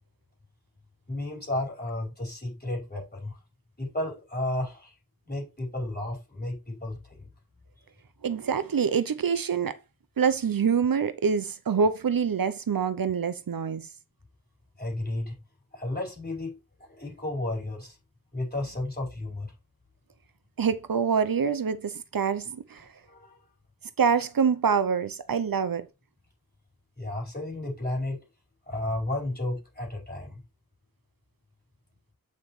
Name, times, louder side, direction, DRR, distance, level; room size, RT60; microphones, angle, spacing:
voice 1, 1.1-3.4 3.8-4.9 5.3-7.3 14.8-15.3 15.7-18.0 18.3-19.5 23.1-23.4 27.0-28.2 28.7-30.4, left 1 dB, 25° left, 5.0 m, -33 dB
voice 2, 8.2-9.8 10.2-13.8 20.6-22.9 24.0-25.9, right 6 dB, 75° right, 0.7 m, -25 dB
8.5 x 5.7 x 3.2 m
wide cardioid pair, 75°, 35 cm